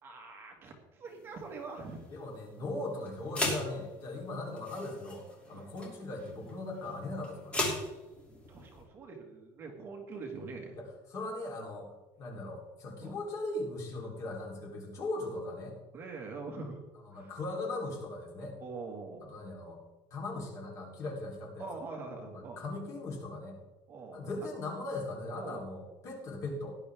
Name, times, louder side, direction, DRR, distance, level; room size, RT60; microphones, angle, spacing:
voice 1, 0.0-2.1 4.1-4.2 5.5-5.7 8.3-10.8 13.0-13.1 15.9-16.8 17.1-17.3 18.6-19.3 21.6-22.6 23.9-24.2 25.3-25.6, right 4 dB, 25° right, 1 dB, 1.8 m, -44 dB
sound 1, 1.1-8.8, left 2 dB, 15° left, 2.8 m, -39 dB
voice 2, 2.1-7.6 10.8-11.9 12.2-15.8 17.0-18.6 19.2-19.8 20.1-21.7 22.6-23.6 24.1-26.8, left 2 dB, 35° left, 0 dB, 3.5 m, -39 dB
18.0 x 10.5 x 3.6 m, 1.1 s
cardioid pair, 175°, 9 cm